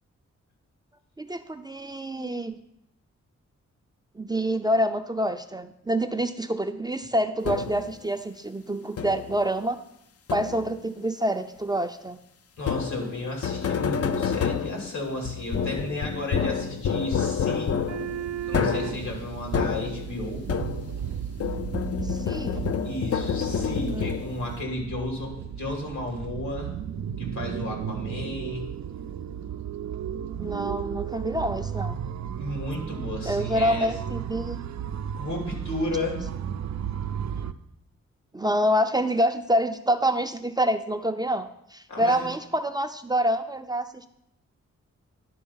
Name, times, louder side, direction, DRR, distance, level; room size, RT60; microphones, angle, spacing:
voice 1, 1.2-2.6 4.2-9.8 10.3-12.2 22.0-22.6 23.9-24.1 30.4-32.0 33.3-34.6 38.3-44.1, equal, 15° right, 6 dB, 0.5 m, -27 dB
sound 1, 7.4-8.0 9.0-9.4 10.3-10.8 12.6-21.1 21.4-24.6, left 7 dB, 55° left, 0.5 m, -29 dB
voice 2, 12.6-17.7 18.4-20.4 22.8-26.7 27.2-28.6 32.4-33.9 35.1-36.2 41.9-42.3, left 1 dB, 80° left, 0 dB, 2.7 m, -33 dB
sound 2, 17.7-37.5, right 9 dB, 70° right, 0.5 m, -34 dB
11.0 x 4.3 x 5.5 m, 0.78 s
cardioid pair, 85°, 29 cm